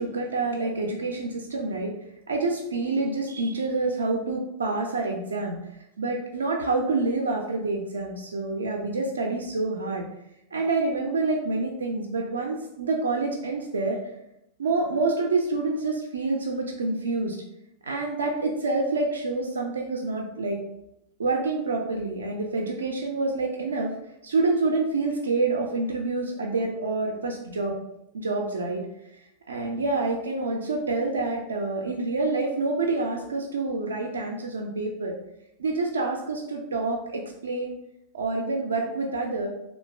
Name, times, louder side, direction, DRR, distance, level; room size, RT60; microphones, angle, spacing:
voice 1, 0.0-1.9 2.3-5.6 6.0-10.1 10.5-14.0 14.6-17.4 17.8-20.6 21.2-23.9 24.2-27.7 28.1-28.8 29.5-35.2 35.6-37.7 38.1-39.5, right 3 dB, 75° right, 1 dB, 0.3 m, -27 dB
3.0 x 2.1 x 2.3 m, 0.85 s
figure-of-eight pair, 90°, 0 cm